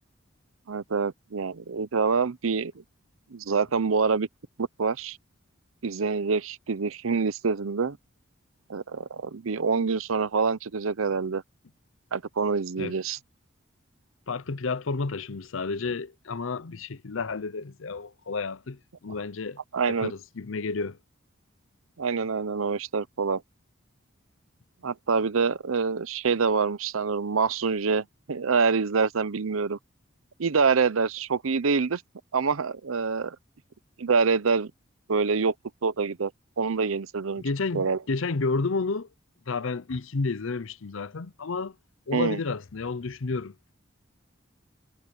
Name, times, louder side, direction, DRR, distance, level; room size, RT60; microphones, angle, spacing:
voice 1, 0.7-2.8 3.3-4.3 4.6-5.2 5.8-8.0 8.7-11.4 12.1-13.2 19.7-20.1 22.0-23.4 24.8-29.8 30.4-32.0 32.3-33.4 34.0-34.7 35.1-35.5 35.8-36.3 36.6-37.4 37.7-38.0 42.1-42.4, right 5 dB, 85° right, 0.7 m, -26 dB
voice 2, 14.3-19.6 19.9-21.0 37.4-39.1 39.5-41.8 42.1-43.5, left 4 dB, 75° left, 0.7 m, -31 dB
head